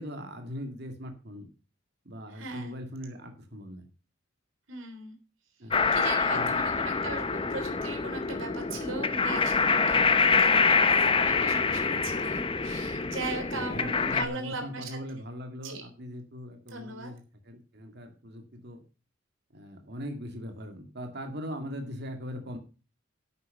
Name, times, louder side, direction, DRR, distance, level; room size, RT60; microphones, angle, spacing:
voice 1, 0.0-1.5 2.1-3.8 5.6-5.9 6.3-6.7 13.5-18.8 19.5-22.6, equal, 50° right, 5 dB, 2.1 m, -40 dB
voice 2, 2.3-2.7 4.7-5.2 5.9-15.0 15.6-15.8 16.7-17.1, right 3 dB, 70° right, 5 dB, 3.4 m, -38 dB
sound 1, 5.7-14.2, left 4 dB, 25° left, 0.7 m, -26 dB
11.0 x 8.4 x 5.3 m, 0.34 s
head